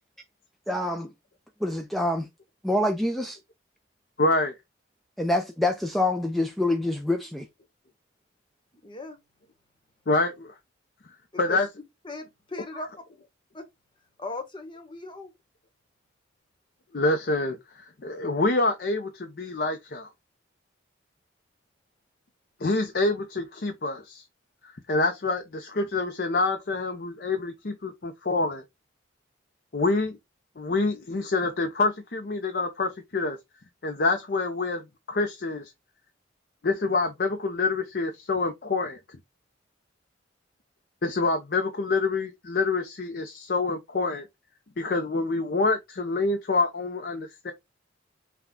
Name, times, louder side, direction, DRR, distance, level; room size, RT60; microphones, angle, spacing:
voice 1, 0.7-1.1 1.6-2.3 2.6-3.4 5.2-7.5, left 1 dB, ahead, 0.4 m, -26 dB
voice 2, 4.2-4.5 10.1-10.5 11.4-11.7 16.9-17.6 18.0-20.1 22.6-24.2 24.9-28.6 29.7-30.2 30.6-33.4 33.8-34.8 35.1-35.7 36.6-39.0 41.0-44.2 44.8-47.5, left 3 dB, 50° left, 0.6 m, -26 dB
voice 3, 8.8-9.2 11.5-11.7 12.0-12.9 13.5-13.7 14.2-15.3, left 2 dB, 25° left, 1.0 m, -38 dB
5.8 x 2.3 x 3.6 m
head